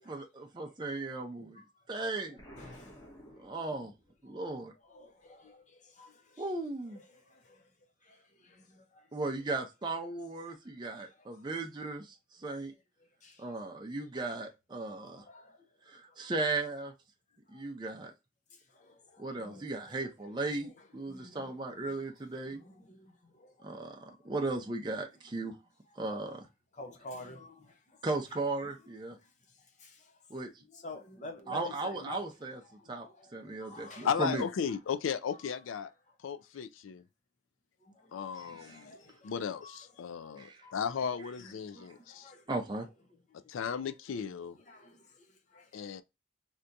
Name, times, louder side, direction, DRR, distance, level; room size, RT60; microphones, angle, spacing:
voice 1, 0.0-1.6 1.9-2.4 3.4-3.9 4.2-4.7 6.4-7.0 9.1-12.7 13.4-15.2 15.9-16.9 17.5-18.1 19.2-22.6 23.6-25.5 26.0-26.4 28.0-29.2 30.3-30.5 31.5-32.6 32.9-33.1 33.3-34.4 38.5-38.8 40.4-40.6 42.5-42.9, right 3 dB, 25° right, 0.5 m, -36 dB
Explosion, 2.4-4.2, equal, 20° left, 1.1 m, -52 dB
voice 2, 2.6-3.1 4.8-6.5 6.9-7.7 8.0-9.1 10.9-11.5 13.2-13.6 15.0-15.7 16.1-16.3 17.5-17.6 18.5-20.0 20.4-22.0 22.4-23.8 24.1-24.3 26.7-28.0 28.6-28.8 29.2-29.3 29.6-30.2 30.6-32.3 32.6-34.2 34.7-34.8 35.4-35.5 37.8-39.3 39.6-41.1 41.4-42.9 43.5-43.9 44.6-46.0, left 2 dB, 35° left, 0.6 m, -52 dB
voice 3, 34.0-35.9 36.2-37.0 38.1-39.0 39.2-42.3 43.5-44.6 45.7-46.0, left 7 dB, 90° left, 0.4 m, -35 dB
3.4 x 2.7 x 2.5 m
head